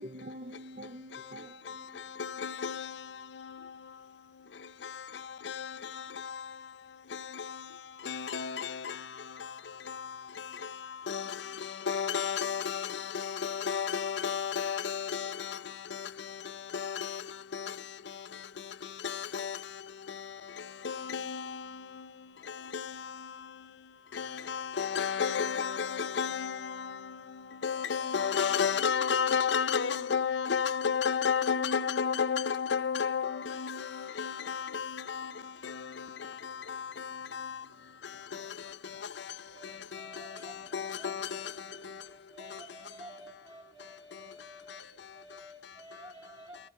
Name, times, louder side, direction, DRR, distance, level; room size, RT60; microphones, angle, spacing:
voice 1, 0.0-2.2, equal, 50° right, 0.6 m, -46 dB
voice 2, 1.1-42.9 43.8-46.0 46.5-46.7, left 6 dB, 80° left, 0.6 m, -35 dB
voice 3, 39.3-46.7, right 1 dB, 30° right, 2.8 m, -52 dB
14.0 x 11.0 x 5.1 m
head